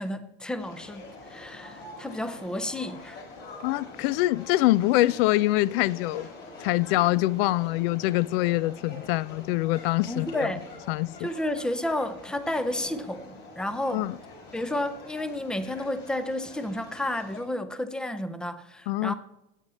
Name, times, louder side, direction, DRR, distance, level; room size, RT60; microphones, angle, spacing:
voice 1, 0.0-3.2 10.1-10.7 11.2-14.1 14.5-19.1, left 1 dB, 5° left, 0.5 m, -31 dB
sound 1, 0.6-17.4, left 2 dB, 30° left, 4.2 m, -45 dB
voice 2, 3.6-6.3 6.6-10.5 10.9-11.3 13.9-14.2 18.9-19.1, left 17 dB, 70° left, 0.5 m, -24 dB
19.0 x 8.3 x 4.2 m
cardioid pair, 160°, 32 cm